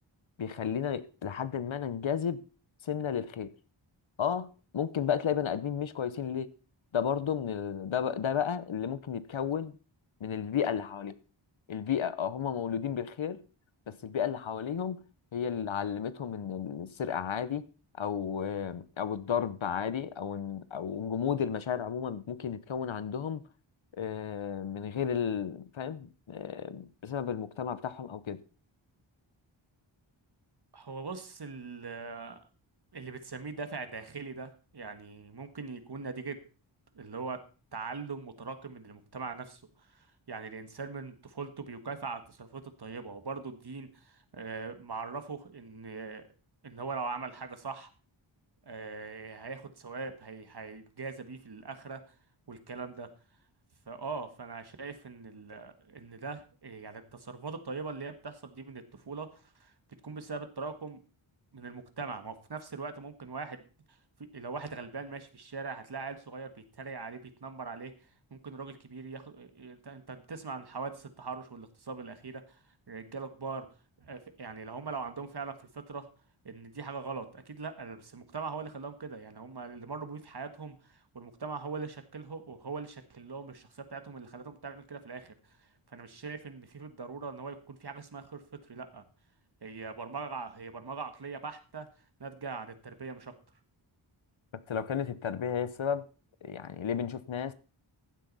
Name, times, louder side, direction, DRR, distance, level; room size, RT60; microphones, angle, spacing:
voice 1, 0.4-2.4 2.8-3.5 4.2-4.5 4.7-6.5 6.9-9.7 10.2-11.2 11.7-13.4 13.9-15.0 15.3-17.6 18.0-23.4 23.9-28.4 94.7-96.0 96.4-97.5, left 8 dB, 70° left, 0.9 m, -33 dB
voice 2, 30.7-32.4 32.9-36.4 36.9-37.4 37.7-39.6 39.9-46.3 46.6-47.9 48.6-52.0 52.5-53.1 53.9-59.7 60.0-61.0 61.5-63.6 63.9-67.9 68.3-72.6 72.9-73.7 74.0-76.1 76.4-85.4 85.9-89.0 89.6-91.9 92.2-93.3, right 4 dB, 55° right, 1.5 m, -41 dB
15.0 x 7.7 x 4.0 m
wide cardioid pair, 80°, 48 cm